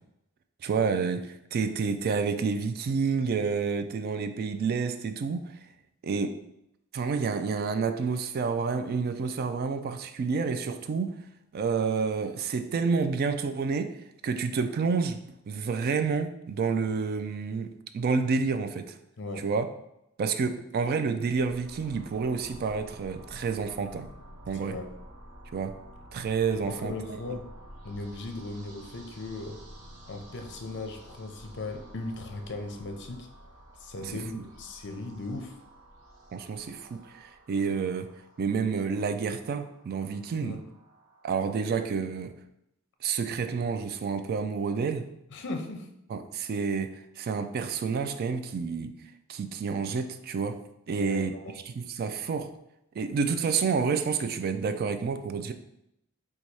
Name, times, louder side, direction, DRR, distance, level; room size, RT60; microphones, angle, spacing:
voice 1, 0.6-5.6 6.0-6.4 6.9-11.1 11.5-14.0 14.2-18.9 19.4-19.7 20.2-24.1 24.5-24.8 25.5-25.8 26.1-27.2 34.0-34.4 36.3-38.1 38.4-40.6 41.2-42.3 43.0-45.1 46.1-48.9 49.3-50.6 50.9-51.3 51.7-52.5 53.0-55.5, right 5 dB, 45° right, 9 dB, 0.3 m, -29 dB
voice 2, 19.2-19.5 24.5-24.9 26.5-27.5 27.8-29.6 30.1-33.3 33.8-35.6 40.4-40.6 45.3-45.9 50.9-51.6, left 2 dB, 55° left, 5 dB, 0.6 m, -37 dB
sound 1, 21.3-37.8, equal, 5° left, 0.7 m, -52 dB
sound 2, 21.6-41.4, right 1 dB, 90° right, 0.7 m, -54 dB
4.0 x 2.3 x 4.6 m, 0.82 s
head